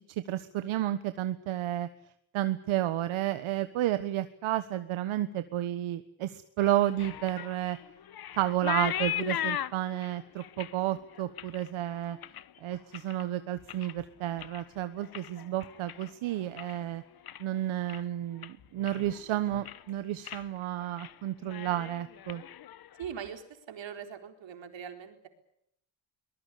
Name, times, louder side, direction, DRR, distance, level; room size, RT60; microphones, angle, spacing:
voice 1, 0.3-1.9 2.3-7.8 8.3-12.2 12.6-17.0 17.4-22.4, right 13 dB, 85° right, 11 dB, 1.4 m, -31 dB
sound 1, 6.6-13.2 13.6-14.1 14.3-16.8 17.1-17.6 17.9-18.0 18.4-19.2 19.5-19.9 20.2-20.5 20.8-21.1 21.4-23.3, left 10 dB, 50° left, 1.1 m, -38 dB
voice 2, 23.0-25.3, right 8 dB, 65° right, 6 dB, 4.2 m, -41 dB
23.0 x 20.5 x 8.5 m, 0.75 s
cardioid pair, 100°, 47 cm